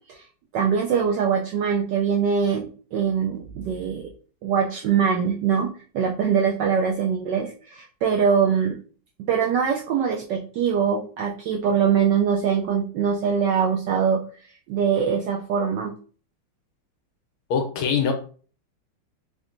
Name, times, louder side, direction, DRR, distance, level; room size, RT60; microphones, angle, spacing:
voice 1, 0.5-4.1 4.4-8.8 9.3-14.2 14.7-15.9, right 7 dB, 80° right, 0 dB, 1.0 m, -23 dB
voice 2, 17.5-18.1, left 6 dB, 75° left, 5 dB, 1.6 m, -22 dB
3.6 x 3.5 x 2.6 m, 0.41 s
omnidirectional pair, 2.4 m